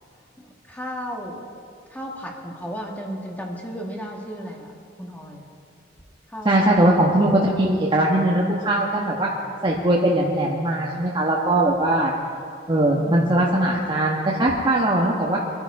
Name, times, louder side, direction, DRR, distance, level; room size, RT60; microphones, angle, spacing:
voice 1, 0.4-1.5 1.9-4.7 5.0-5.4 6.3-6.5, equal, 10° left, -1 dB, 1.6 m, -34 dB
voice 2, 6.4-9.3 9.6-12.1 12.7-15.4, right 1 dB, 25° right, -4 dB, 1.3 m, -20 dB
23.5 x 11.0 x 4.8 m, 2.4 s
head